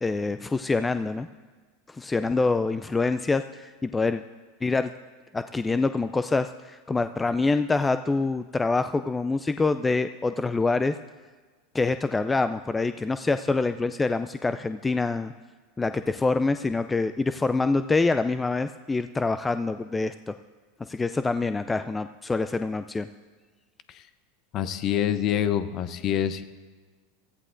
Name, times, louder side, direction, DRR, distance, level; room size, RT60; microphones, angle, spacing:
voice 1, 0.0-1.3 1.9-4.2 4.6-4.9 5.3-10.9 11.7-15.3 15.8-20.3 20.8-23.1, left 3 dB, 15° left, 10 dB, 0.3 m, -26 dB
voice 2, 24.5-26.4, left 10 dB, 45° left, 12 dB, 0.7 m, -26 dB
16.5 x 14.0 x 2.6 m, 1.4 s
hypercardioid pair, 100°, 0 cm